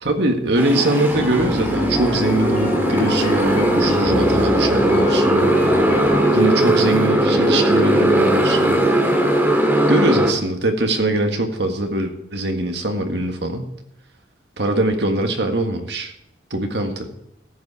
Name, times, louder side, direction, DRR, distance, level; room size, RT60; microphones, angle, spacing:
voice 1, 0.0-5.5 6.3-9.1 9.9-13.7 14.6-16.1 16.5-17.1, right 1 dB, 65° right, 5 dB, 1.7 m, -22 dB
Motorcycle, 0.6-10.3, right 1 dB, 10° right, 2.1 m, -18 dB
sound 1, 1.1-6.3, left 1 dB, 40° left, 2.4 m, -30 dB
14.0 x 8.4 x 4.8 m, 0.79 s
head